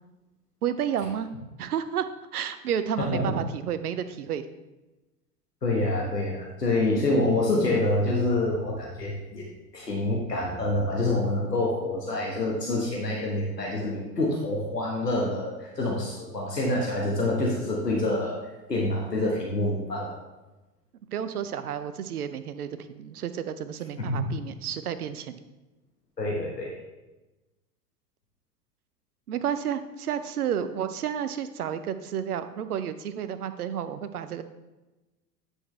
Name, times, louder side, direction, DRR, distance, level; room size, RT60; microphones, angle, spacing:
voice 1, 0.6-1.3 1.6-2.0 2.3-4.4 21.1-25.4 29.3-34.4, right 9 dB, 70° right, 11 dB, 0.8 m, -31 dB
voice 2, 3.0-3.3 5.6-9.4 9.7-18.4 18.7-20.2 24.0-24.2 26.2-26.7, left 2 dB, 85° left, -2 dB, 1.4 m, -27 dB
9.8 x 6.3 x 3.2 m, 1.1 s
figure-of-eight pair, 85°, 47 cm